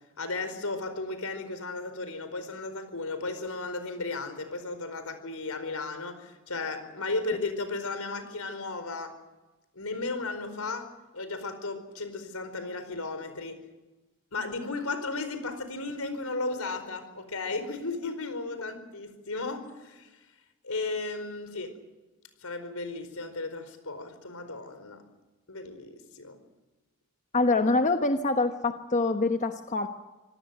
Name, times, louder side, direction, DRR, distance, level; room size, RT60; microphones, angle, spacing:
voice 1, 0.2-9.2 9.7-10.9 11.1-13.6 14.3-20.1 20.6-21.7 22.4-25.0 25.5-26.4, left 3 dB, 80° left, 10 dB, 4.7 m, -35 dB
voice 2, 27.3-29.9, left 3 dB, 35° left, 6 dB, 1.2 m, -25 dB
26.0 x 18.0 x 9.3 m, 1.1 s
head